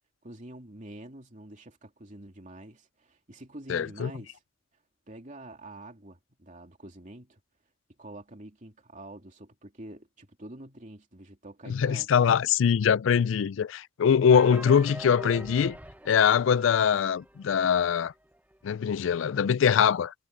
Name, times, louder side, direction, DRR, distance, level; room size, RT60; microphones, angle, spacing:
voice 1, 0.2-4.4 5.1-7.4 8.0-12.4, right 1 dB, 40° right, 3.0 m, -46 dB
voice 2, 3.7-4.1 11.7-15.8 16.1-18.1 18.6-20.1, left 7 dB, 70° left, 0.4 m, -23 dB
sound 1, 14.3-18.1 18.3-18.4 18.7-18.8 19.3-19.4, right 1 dB, 10° right, 1.0 m, -44 dB
head